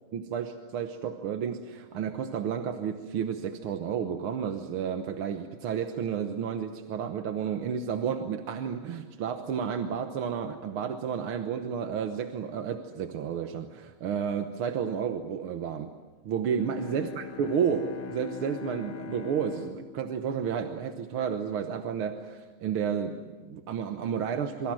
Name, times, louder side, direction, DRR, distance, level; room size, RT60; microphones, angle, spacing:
voice 1, 0.1-15.9 16.2-24.7, right 7 dB, 80° right, 6 dB, 1.9 m, -31 dB
Bowed string instrument, 16.4-21.3, left 6 dB, 85° left, 2.5 m, -43 dB
26.5 x 24.5 x 7.7 m, 1.4 s
omnidirectional pair, 2.3 m